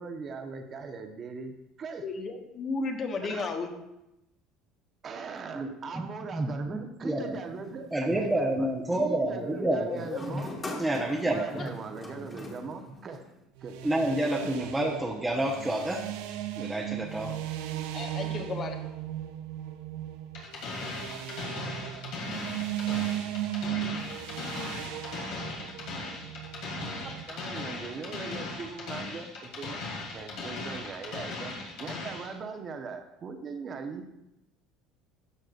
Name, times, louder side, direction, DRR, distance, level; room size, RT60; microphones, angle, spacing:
voice 1, 0.0-2.0 3.3-3.5 5.0-10.5 11.3-13.3 13.6-13.8 14.1-14.2 27.3-29.8 30.1-31.5 31.8-34.1, right 5 dB, 40° right, 6 dB, 1.0 m, -40 dB
voice 2, 2.0-3.7 9.6-10.4 11.5-11.6 17.9-18.7, left 4 dB, 40° left, 4 dB, 1.3 m, -34 dB
voice 3, 5.5-6.0 6.3-7.4 7.9-10.4 10.8-11.8 13.8-16.0 16.6-17.3, right 1 dB, 10° right, -2 dB, 1.0 m, -29 dB
sound 1, 7.2-8.5 9.9-13.4, left 2 dB, 25° left, 1.7 m, -43 dB
sound 2, 13.6-27.2, right 12 dB, 80° right, 0.6 m, -36 dB
sound 3, 20.3-32.3, left 3 dB, 70° left, 2.3 m, -38 dB
12.5 x 6.5 x 2.5 m, 0.88 s
supercardioid pair, 85°, 0 cm